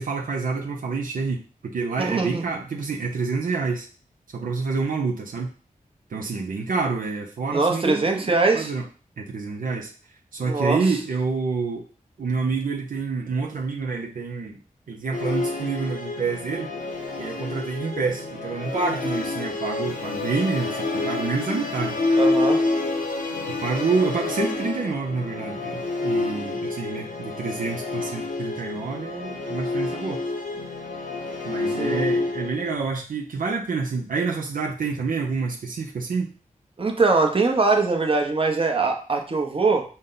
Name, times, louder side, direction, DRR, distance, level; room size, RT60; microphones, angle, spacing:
voice 1, 0.0-3.9 4.3-5.5 6.1-8.9 9.2-9.9 10.3-11.8 12.2-14.6 14.9-16.7 17.2-22.0 23.6-30.2 31.4-36.3, right 4 dB, 75° right, 0 dB, 0.6 m, -28 dB
voice 2, 2.0-2.4 7.5-8.7 10.4-10.8 22.2-22.6 31.8-32.0 36.8-39.8, right 3 dB, 40° right, 2 dB, 0.9 m, -22 dB
Musical instrument, 15.1-32.7, left 2 dB, 85° left, 1.0 m, -28 dB
5.2 x 2.2 x 3.8 m, 0.40 s
cardioid pair, 60°, 14 cm